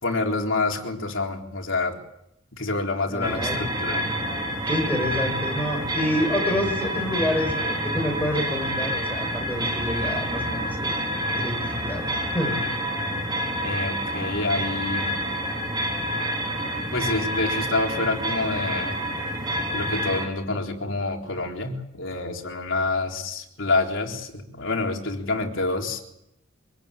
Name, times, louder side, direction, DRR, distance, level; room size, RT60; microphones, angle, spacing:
voice 1, 0.0-2.0 2.5-4.1 13.6-15.2 16.5-16.6 16.9-19.0 19.7-26.0, left 3 dB, 65° left, 2 dB, 3.9 m, -27 dB
voice 2, 3.0-3.6 4.7-10.9 11.4-12.6, left 1 dB, 10° left, 2 dB, 6.6 m, -28 dB
sound 1, 3.2-20.3, equal, 20° right, 3.6 m, -28 dB
25.0 x 17.5 x 8.7 m, 0.80 s
head